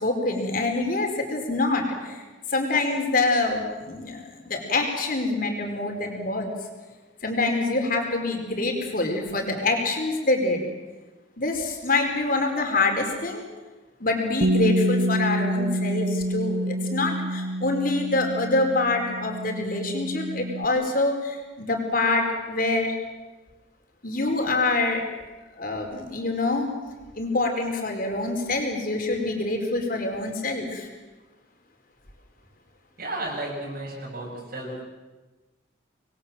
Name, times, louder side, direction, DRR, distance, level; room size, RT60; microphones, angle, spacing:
voice 1, 0.0-2.2 2.5-6.5 7.2-10.6 11.4-13.5 14.0-22.9 24.0-25.0 25.6-26.7 27.2-30.9, left 2 dB, 45° left, 3 dB, 4.7 m, -25 dB
Bass guitar, 14.4-20.7, right 1 dB, 85° right, 1.2 m, -27 dB
voice 2, 33.0-34.8, right 1 dB, 50° right, -5 dB, 6.8 m, -33 dB
26.5 x 21.5 x 7.7 m, 1.2 s
head